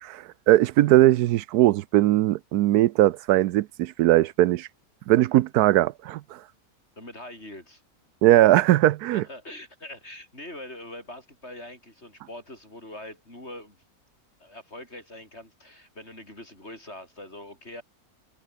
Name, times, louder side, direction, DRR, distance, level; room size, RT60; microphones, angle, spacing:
voice 1, 0.0-4.7 5.1-6.4 8.2-9.2, right 15 dB, 85° right, 1.1 m, -20 dB
voice 2, 7.0-7.8 9.1-13.8 14.4-17.8, left 1 dB, 45° left, 8.3 m, -43 dB
omnidirectional pair, 1.6 m